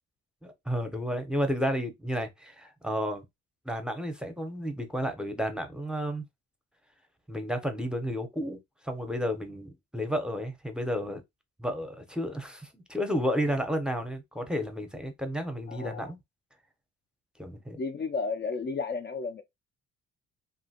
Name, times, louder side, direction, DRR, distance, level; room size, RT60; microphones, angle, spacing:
voice 1, 0.4-3.2 3.7-6.3 7.3-11.2 11.6-16.2 17.4-17.8, equal, 5° right, 0.7 m, -32 dB
voice 2, 15.7-16.1 17.8-19.4, left 4 dB, 35° left, 0.5 m, -33 dB
2.9 x 2.6 x 2.8 m
cardioid pair, 90°, 30 cm